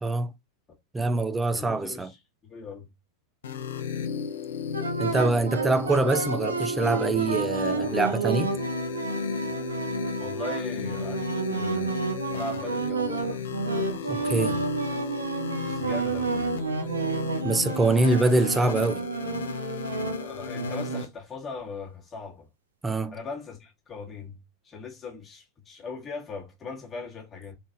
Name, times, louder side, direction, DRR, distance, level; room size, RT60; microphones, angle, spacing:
voice 1, 0.0-0.3 0.9-2.1 5.0-8.5 14.1-14.6 17.4-19.0 22.8-23.1, right 2 dB, 10° right, 0.4 m, -24 dB
voice 2, 1.5-2.2 2.4-2.9 10.2-12.0 12.3-13.5 14.0-14.7 15.7-16.5 20.2-22.5 23.1-27.6, left 4 dB, 20° left, 1.6 m, -39 dB
sound 1, 3.4-21.1, left 6 dB, 60° left, 0.6 m, -34 dB
sound 2, 4.7-21.1, right 4 dB, 75° right, 0.8 m, -30 dB
3.9 x 3.8 x 2.4 m
figure-of-eight pair, 90°, 0 cm